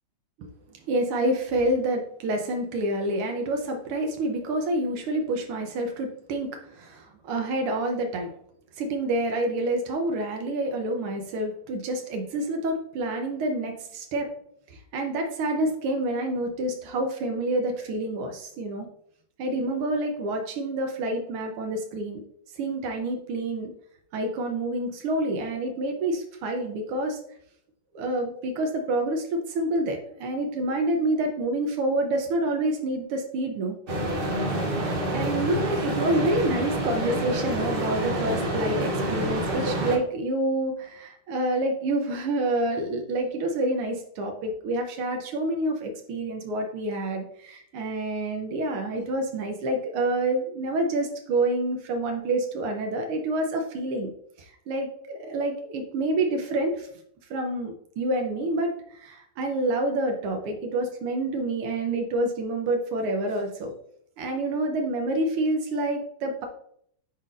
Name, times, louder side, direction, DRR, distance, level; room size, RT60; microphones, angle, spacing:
voice 1, 0.9-8.3 8.8-14.3 14.7-18.9 19.4-22.2 22.6-23.7 24.1-27.2 27.9-33.8 35.1-54.1 54.4-56.9 57.3-63.7 64.2-66.5, right 1 dB, 90° right, 3 dB, 1.7 m, -28 dB
sound 1, 33.9-40.0, right 1 dB, 50° right, 0.6 m, -27 dB
9.4 x 4.1 x 2.5 m, 0.67 s
omnidirectional pair, 2.4 m